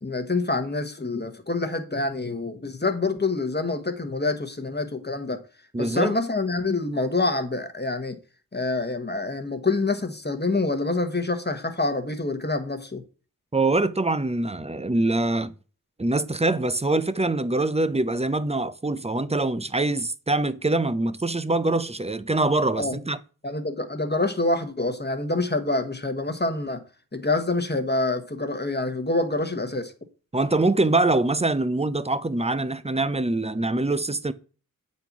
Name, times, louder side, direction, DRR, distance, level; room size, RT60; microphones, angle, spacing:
voice 1, 0.0-5.4 5.8-8.2 8.5-13.0 22.7-23.0 23.4-26.8 27.1-29.9, left 2 dB, 30° left, 1.3 m, -26 dB
voice 2, 5.7-6.1 13.5-15.5 16.0-23.2 30.3-34.3, right 2 dB, 20° right, 0.6 m, -24 dB
8.7 x 4.2 x 5.9 m
wide cardioid pair, 45°, 36 cm